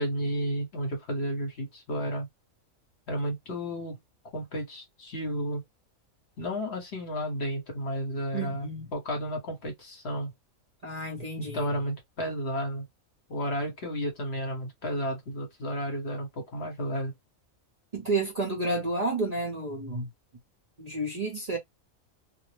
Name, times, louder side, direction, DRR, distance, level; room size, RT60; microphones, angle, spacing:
voice 1, 0.0-2.3 3.1-3.9 4.3-5.6 6.4-10.3 11.5-12.8 13.3-17.1, equal, 55° left, 1.2 m, -32 dB
voice 2, 8.3-8.9 10.8-11.7 17.9-20.1 20.8-21.6, right 2 dB, 40° right, 0.7 m, -31 dB
2.5 x 2.0 x 3.1 m
omnidirectional pair, 1.4 m